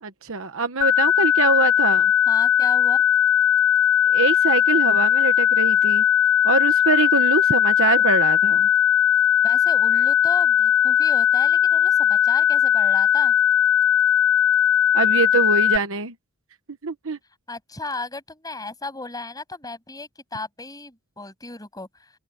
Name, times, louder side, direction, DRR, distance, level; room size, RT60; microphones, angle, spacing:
voice 1, 0.0-2.1 4.1-6.0 6.4-8.7 14.9-16.1 16.8-17.2, right 4 dB, 65° right, 1.2 m, -24 dB
sound 1, 0.8-15.8, left 11 dB, 70° left, 0.6 m, -18 dB
voice 2, 2.3-3.0 9.4-13.3 17.5-22.1, left 3 dB, 15° left, 7.5 m, -35 dB
open air
head